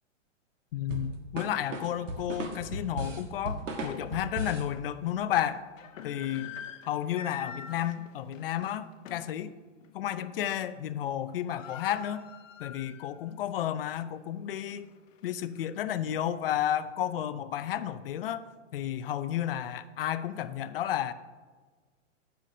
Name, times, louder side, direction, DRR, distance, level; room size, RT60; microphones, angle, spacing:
voice 1, 0.7-5.6 6.0-6.5 6.9-9.5 9.9-12.2 12.6-14.9 15.2-18.4 18.7-21.1, left 11 dB, 50° left, 13 dB, 0.5 m, -32 dB
sound 1, 0.9-4.7, right 1 dB, 75° right, 1.4 m, -36 dB
sound 2, 3.8-3.9 4.5-4.6 5.5-9.4 9.8-10.0 10.3-10.7 11.0-11.1 11.3-13.3 13.7-13.8 14.4-15.7, left 8 dB, 80° left, 0.9 m, -46 dB
15.0 x 5.7 x 2.7 m, 1.4 s
hypercardioid pair, 150°, 38 cm